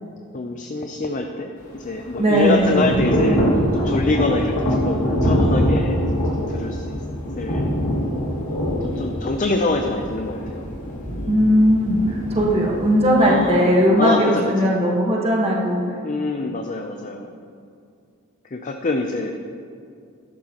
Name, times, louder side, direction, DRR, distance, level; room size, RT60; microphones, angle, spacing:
voice 1, 0.3-4.6 4.8-7.0 7.4-7.7 8.6-10.7 12.4-12.6 13.2-13.7 14.0-14.8 16.0-17.3 18.4-19.4, left 2 dB, 35° left, 4 dB, 0.5 m, -25 dB
Thunder / Rain, 1.6-13.6, equal, 80° left, 2.2 m, -24 dB
voice 2, 2.2-3.0 11.3-15.8, equal, 30° right, -2 dB, 1.4 m, -18 dB
12.5 x 11.5 x 3.0 m, 2.3 s
head